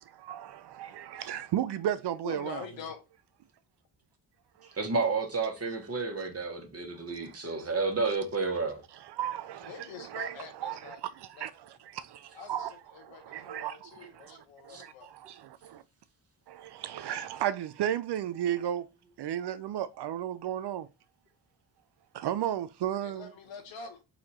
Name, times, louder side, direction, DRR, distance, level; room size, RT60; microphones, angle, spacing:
voice 1, 0.1-2.7 4.6-4.7 7.2-7.5 9.1-9.7 10.0-15.8 16.5-18.9 19.2-20.9 22.1-23.3, right 11 dB, 65° right, 0.5 m, -34 dB
voice 2, 2.2-3.0 9.6-11.0 11.3-11.5 12.3-15.1 23.0-24.0, left 6 dB, 85° left, 1.3 m, -45 dB
voice 3, 4.7-8.8 14.7-14.8, right 4 dB, 30° right, 1.5 m, -31 dB
4.2 x 2.8 x 4.2 m
cardioid pair, 75°, 45 cm